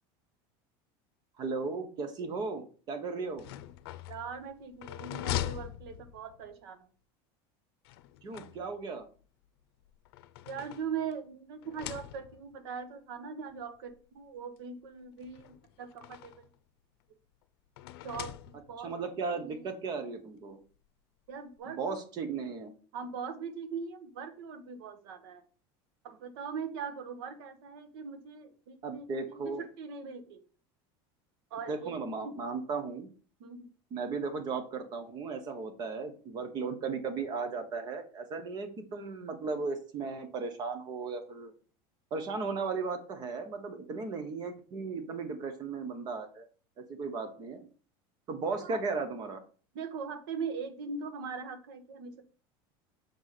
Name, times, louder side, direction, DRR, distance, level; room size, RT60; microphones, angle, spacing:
voice 1, 1.4-3.5 8.2-9.1 18.8-20.6 21.7-22.7 28.8-29.7 31.7-33.1 33.9-41.5 42.1-46.4 46.9-47.7 48.3-49.4, right 4 dB, 35° right, 7 dB, 1.3 m, -36 dB
sound 1, 3.2-6.6 7.8-9.0 9.8-11.2 11.6-12.6 13.5-13.6 13.9-14.0 15.2-16.5 17.8-18.9, left 13 dB, 85° left, 0.6 m, -41 dB
voice 2, 4.1-6.9 10.5-16.5 18.0-18.9 19.3-19.6 21.3-22.0 22.9-25.4 26.0-29.0 29.4-30.4 31.5-31.9 32.2-32.3 33.4-33.7 48.6-48.8 49.7-52.2, right 6 dB, 85° right, 9 dB, 1.2 m, -40 dB
6.7 x 4.8 x 4.2 m, 0.39 s
cardioid pair, 155°, 13 cm